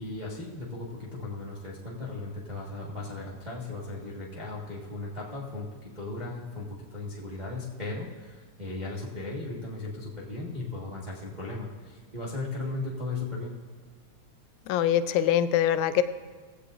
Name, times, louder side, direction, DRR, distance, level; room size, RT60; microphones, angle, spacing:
voice 1, 0.0-13.5, left 2 dB, 25° right, -6 dB, 0.9 m, -37 dB
voice 2, 14.7-16.0, left 10 dB, 85° left, 12 dB, 2.0 m, -23 dB
18.0 x 15.5 x 2.5 m, 1.5 s
omnidirectional pair, 3.4 m